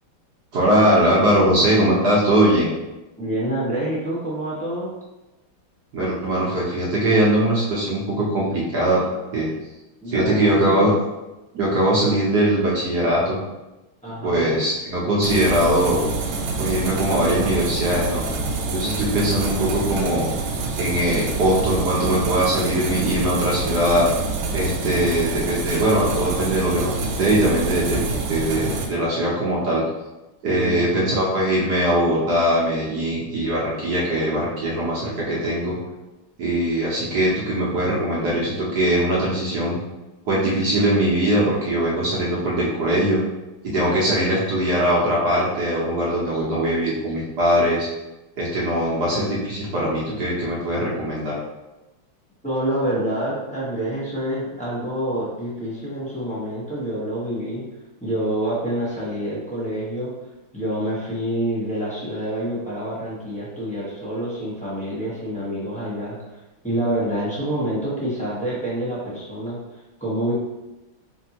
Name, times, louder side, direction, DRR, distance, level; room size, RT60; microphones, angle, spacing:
voice 1, 0.5-2.7 5.9-9.0 9.3-9.5 10.1-10.9 11.5-13.4 14.2-16.1 16.6-18.3 18.7-20.3 20.8-24.1 24.5-29.8 30.4-35.8 36.4-39.8 40.3-43.2 43.6-47.9 48.4-51.4, right 1 dB, 60° right, -5 dB, 1.2 m, -21 dB
voice 2, 3.2-4.9 10.0-10.9 14.0-14.6 30.5-31.2 52.4-57.6 58.0-60.1 60.5-69.6 70.0-70.3, right 1 dB, 10° left, -9 dB, 0.4 m, -27 dB
sound 1, 15.2-28.9, right 3 dB, 85° right, 1.5 m, -27 dB
4.3 x 3.4 x 2.8 m, 1.0 s
omnidirectional pair, 2.3 m